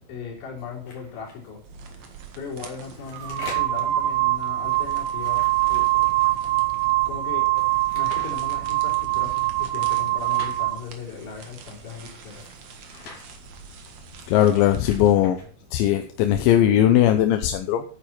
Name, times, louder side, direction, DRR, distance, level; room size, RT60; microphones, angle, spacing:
voice 1, 0.1-1.6 2.4-6.1 7.1-12.4 12.7-12.8, left 5 dB, 60° left, -2 dB, 5.8 m, -38 dB
sound 1, 0.9-1.4 2.5-3.9 5.0-6.3 7.5-8.3 9.7-10.6 12.1-13.3 14.4-15.5, left 3 dB, 45° left, 3.9 m, -44 dB
sound 2, 1.6-15.1, right 5 dB, 60° right, 1.9 m, -45 dB
sound 3, 2.1-2.3 3.1-10.8, right 18 dB, 80° right, 3.0 m, -23 dB
voice 2, 14.3-15.4 15.7-17.9, left 11 dB, 80° left, 7 dB, 3.0 m, -19 dB
11.5 x 9.5 x 4.4 m, 0.41 s
omnidirectional pair, 5.6 m